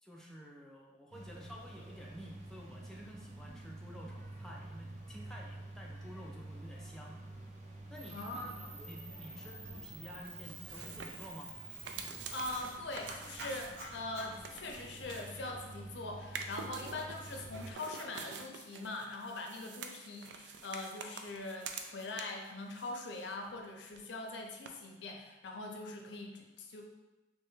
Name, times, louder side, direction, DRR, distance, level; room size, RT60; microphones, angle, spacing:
voice 1, 0.0-7.2 7.9-8.5 8.8-11.5, equal, 5° left, -3 dB, 0.3 m, -51 dB
sound 1, 1.1-17.7, right 2 dB, 40° right, 0.6 m, -49 dB
Camera, 7.9-15.1, right 1 dB, 55° right, 1.0 m, -50 dB
voice 2, 8.1-8.7 11.9-26.8, left 2 dB, 75° left, 2 dB, 0.5 m, -42 dB
sound 2, 10.3-15.8 16.2-22.5 22.8-23.6 23.9-24.0 24.7-24.8, right 5 dB, 75° right, 0.3 m, -47 dB
3.2 x 2.8 x 3.2 m, 1.1 s
head